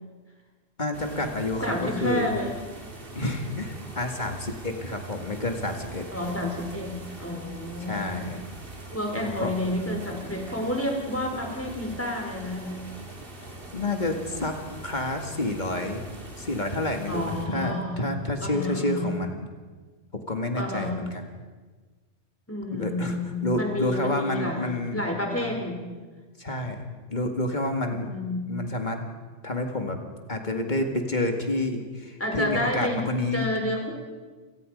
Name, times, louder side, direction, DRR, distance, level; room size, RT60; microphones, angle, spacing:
voice 1, 0.8-2.3 3.1-6.1 7.9-8.4 9.2-9.5 13.7-14.6 14.8-16.0 16.4-19.5 20.1-21.3 22.7-23.2 23.4-25.0 25.4-25.5 26.4-26.8 27.1-28.1 28.5-29.0 29.4-30.0 30.3-33.5, left 2 dB, 40° left, 4 dB, 2.3 m, -29 dB
sound 1, 0.9-17.5, right 2 dB, 50° right, 3.2 m, -42 dB
voice 2, 1.6-2.5 6.1-8.3 8.9-12.8 17.1-18.0 18.4-19.1 20.6-21.0 22.5-25.8 27.9-28.5 32.2-33.9, left 1 dB, 10° left, 1 dB, 4.1 m, -30 dB
28.0 x 18.0 x 5.4 m, 1.4 s
omnidirectional pair, 1.2 m